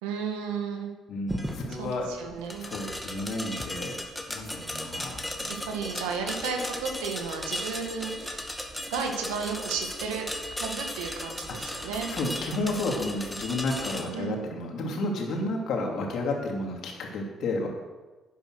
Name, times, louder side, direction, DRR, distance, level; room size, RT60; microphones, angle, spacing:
voice 1, 0.0-0.9 1.8-2.7 5.5-8.4 8.9-12.1 14.1-14.4, right 6 dB, 90° right, 3 dB, 1.8 m, -33 dB
voice 2, 1.1-2.0 2.6-4.0 4.3-5.7 11.6-17.7, left 2 dB, 65° left, 1 dB, 2.8 m, -32 dB
sound 1, 1.3-14.0, left 1 dB, 5° left, 2.3 m, -36 dB
10.5 x 9.3 x 6.4 m, 1.2 s
hypercardioid pair, 60°, 0 cm